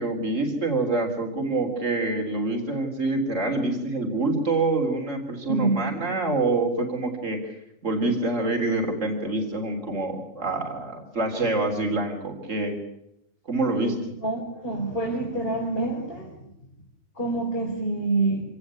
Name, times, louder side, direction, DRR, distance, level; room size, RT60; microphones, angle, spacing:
voice 1, 0.0-7.6 7.8-12.8 13.5-14.2, right 2 dB, 65° right, 3 dB, 3.8 m, -26 dB
voice 2, 5.5-6.0 14.0-16.5 17.1-18.4, right 2 dB, 45° left, -2 dB, 4.8 m, -27 dB
26.0 x 18.0 x 8.3 m, 0.82 s
omnidirectional pair, 1.4 m